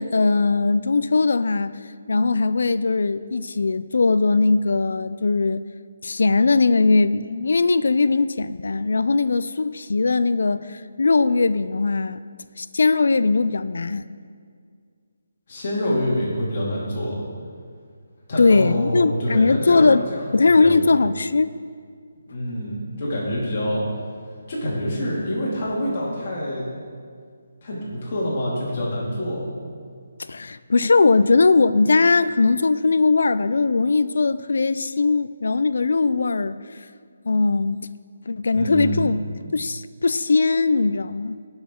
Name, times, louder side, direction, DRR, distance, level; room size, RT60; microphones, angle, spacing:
voice 1, 0.0-1.7 2.1-5.6 6.0-12.2 12.6-14.0 18.4-20.1 20.3-21.5 30.3-36.6 37.3-37.8 38.3-39.2 39.5-41.4, left 3 dB, 65° left, 13 dB, 0.4 m, -19 dB
voice 2, 15.5-17.1 18.3-20.8 22.3-23.8 24.5-26.7 27.6-29.5 38.5-39.0, equal, 30° left, -5 dB, 2.4 m, -26 dB
18.5 x 6.2 x 3.7 m, 2.1 s
hypercardioid pair, 175°, 0 cm